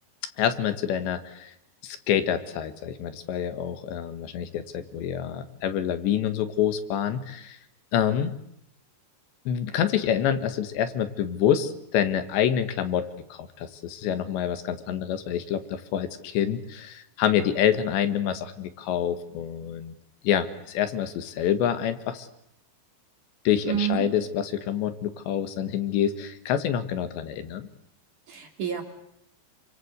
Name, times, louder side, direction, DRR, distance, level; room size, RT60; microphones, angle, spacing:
voice 1, 0.4-1.5 1.8-7.6 7.9-8.3 9.5-19.9 20.2-22.3 23.5-27.7, left 9 dB, 75° left, 10 dB, 3.7 m, -27 dB
voice 2, 23.6-24.1 28.3-28.8, right 10 dB, 45° right, 4 dB, 3.9 m, -28 dB
29.0 x 24.5 x 8.0 m, 0.76 s
omnidirectional pair, 5.3 m